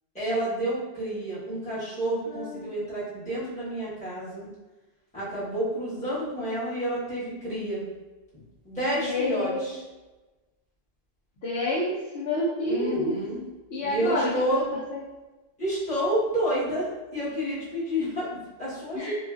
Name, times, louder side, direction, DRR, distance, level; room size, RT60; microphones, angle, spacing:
voice 1, 0.1-4.5 5.1-7.9 8.6-9.8 12.7-13.4 13.8-14.8 15.6-19.1, right 1 dB, 5° left, -12 dB, 1.1 m, -29 dB
voice 2, 2.3-2.7 9.0-9.8 11.4-13.2 13.7-15.0 18.9-19.1, left 1 dB, 65° left, -8 dB, 0.9 m, -29 dB
3.0 x 2.4 x 2.4 m, 1.1 s
omnidirectional pair, 1.1 m